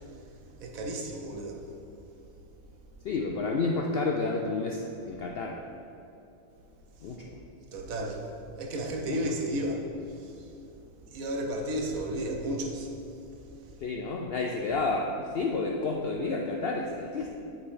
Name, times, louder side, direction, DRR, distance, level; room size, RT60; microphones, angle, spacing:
voice 1, 0.6-1.6 7.7-8.3 8.6-9.9 10.2-10.5 11.1-12.9, right 1 dB, 75° right, 2 dB, 1.2 m, -33 dB
voice 2, 3.0-5.6 7.0-7.4 9.0-9.4 13.8-17.3, left 3 dB, 70° left, 1 dB, 0.5 m, -30 dB
8.5 x 4.2 x 4.8 m, 2.7 s
omnidirectional pair, 1.5 m